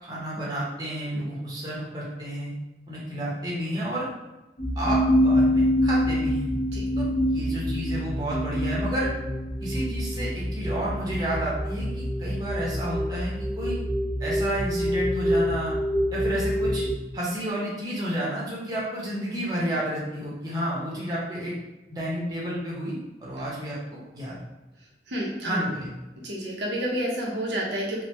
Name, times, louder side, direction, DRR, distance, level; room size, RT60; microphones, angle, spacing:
voice 1, 0.0-2.5 2.9-4.1 4.8-6.5 7.0-9.1 9.6-13.8 14.2-15.7 16.1-16.8 17.1-21.5 21.9-24.4 25.4-25.9, right 1 dB, 20° right, -6 dB, 0.7 m, -31 dB
sound 1, 4.6-16.9, equal, 35° left, 0.5 m, -26 dB
voice 2, 25.1-25.6 26.2-28.0, equal, 90° right, -3 dB, 0.7 m, -29 dB
3.2 x 2.0 x 3.1 m, 1.0 s
head